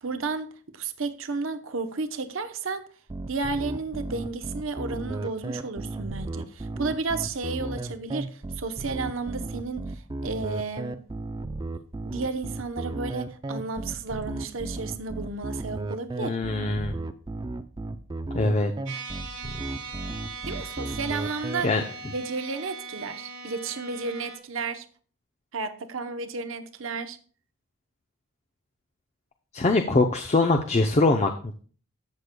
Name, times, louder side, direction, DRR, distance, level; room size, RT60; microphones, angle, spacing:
voice 1, 0.0-2.8 3.3-11.0 12.1-16.4 20.5-21.7 22.1-24.9 25.5-27.2, right 4 dB, 65° right, 0.8 m, -32 dB
sound 1, 3.1-21.6, right 2 dB, 20° right, 0.4 m, -34 dB
voice 2, 16.2-17.0 18.3-19.0 21.6-21.8 29.5-31.5, left 2 dB, 30° left, 0.5 m, -23 dB
sound 2, 18.9-24.4, right 4 dB, 90° right, 4.3 m, -40 dB
14.5 x 6.5 x 2.2 m
head